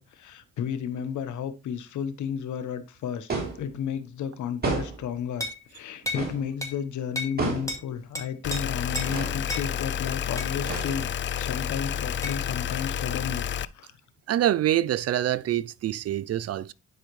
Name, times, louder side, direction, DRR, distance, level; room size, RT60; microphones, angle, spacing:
voice 1, 0.0-11.1 11.4-13.9, left 8 dB, 75° left, 1.2 m, -33 dB
sound 1, 3.3-3.7 4.6-5.1 6.1-6.5 7.4-7.8 9.0-9.4 10.6-11.2, right 3 dB, 30° right, 3.3 m, -31 dB
sound 2, 5.4-5.6 6.1-6.3 6.6-6.8 7.2-7.4 7.7-7.8 8.2-8.6 9.0-9.1 9.5-9.7 10.4-10.5 12.2-12.4, left 1 dB, 10° left, 2.3 m, -32 dB
sound 3, 8.4-13.7, left 9 dB, 40° left, 0.4 m, -30 dB
voice 2, 14.3-16.7, right 12 dB, 55° right, 0.5 m, -25 dB
11.0 x 4.9 x 3.1 m
cardioid pair, 90°, 30 cm